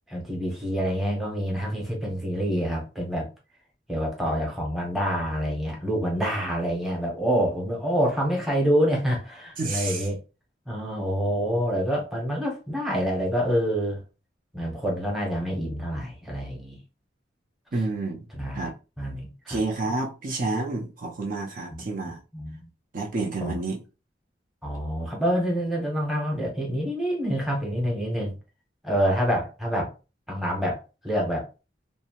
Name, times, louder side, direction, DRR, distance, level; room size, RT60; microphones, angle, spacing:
voice 1, 0.1-3.3 3.9-10.2 10.7-14.0 14.5-16.8 18.3-18.7 19.0-19.6 21.7-22.6 23.4-23.5 24.6-28.4 28.8-29.9 30.3-31.5, equal, ahead, 0.8 m, -27 dB
voice 2, 9.6-10.1 17.7-18.3 18.5-18.7 19.5-22.2 22.9-23.8, right 3 dB, 50° right, 0.5 m, -29 dB
2.7 x 2.0 x 2.8 m
head